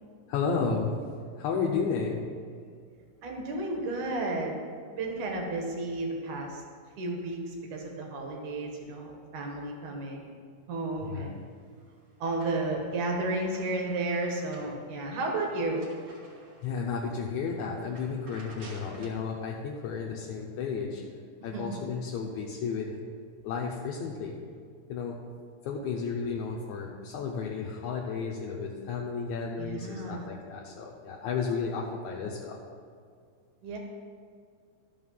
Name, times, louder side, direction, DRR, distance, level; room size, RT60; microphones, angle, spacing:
voice 1, 0.3-2.3 11.0-11.4 16.6-21.0 21.4-23.0 23.4-24.4 24.9-25.2 25.7-32.6, left 5 dB, 75° left, -2 dB, 1.9 m, -33 dB
voice 2, 3.2-4.5 4.9-6.6 7.0-10.4 10.7-11.4 12.2-15.9 21.5-21.8 29.6-30.3 33.6-33.8, right 2 dB, 65° right, 1 dB, 2.6 m, -32 dB
sound 1, 11.3-12.9 13.2-16.9 17.3-17.5 17.8-19.3, right 1 dB, 45° right, 1.8 m, -53 dB
13.0 x 5.5 x 5.6 m, 2.1 s
omnidirectional pair, 4.1 m